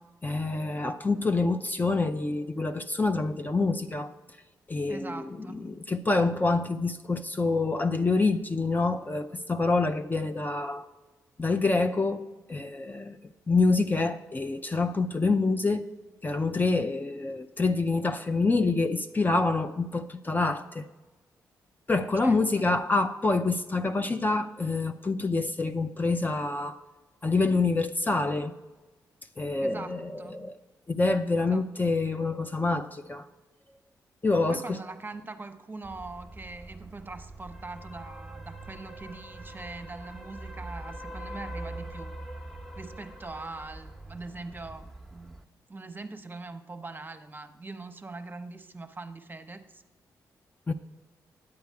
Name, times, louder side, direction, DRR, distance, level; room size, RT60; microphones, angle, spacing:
voice 1, 0.2-4.1 4.7-10.9 11.4-12.2 12.5-13.2 13.5-15.9 16.2-20.9 21.9-26.8 27.2-28.6 29.4-30.5 30.9-33.3 34.2-34.8 50.7-50.8, left 3 dB, 25° left, 0.5 m, -26 dB
voice 2, 4.9-5.6 22.2-22.4 29.6-30.5 31.4-31.6 34.5-42.2 42.8-45.4 45.7-49.8, right 3 dB, 25° right, 0.9 m, -42 dB
sound 1, 35.8-45.4, right 1 dB, 5° left, 1.0 m, -43 dB
9.7 x 8.1 x 4.7 m
cardioid pair, 60°, 7 cm